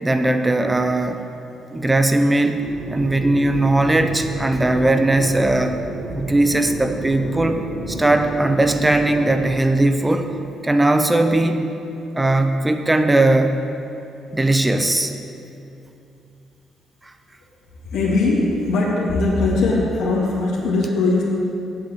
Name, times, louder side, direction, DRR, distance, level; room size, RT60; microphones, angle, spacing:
voice 1, 0.0-1.2 1.7-5.8 6.1-7.6 7.9-10.3 10.6-11.6 12.1-13.5 14.3-15.1, right 2 dB, 15° right, 7 dB, 0.8 m, -18 dB
sound 1, 2.6-9.5, right 1 dB, 75° right, 1.8 m, -32 dB
voice 2, 17.9-21.2, left 3 dB, 85° left, -6 dB, 2.5 m, -20 dB
8.6 x 7.9 x 7.9 m, 2.7 s
cardioid pair, 90°, 0 cm